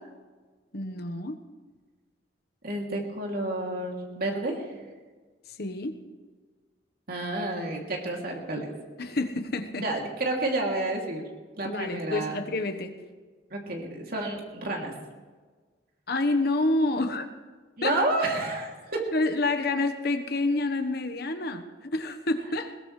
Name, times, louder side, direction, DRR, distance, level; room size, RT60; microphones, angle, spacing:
voice 1, 0.7-1.4 5.6-6.0 9.0-9.8 11.6-12.9 16.1-17.3 17.8-18.0 19.1-22.7, left 2 dB, 60° left, 8 dB, 1.2 m, -28 dB
voice 2, 2.6-4.7 7.1-8.7 9.8-11.2 11.6-12.4 13.5-14.9 17.8-19.1, right 2 dB, 55° right, 0 dB, 2.8 m, -30 dB
21.0 x 18.0 x 3.3 m, 1.4 s
head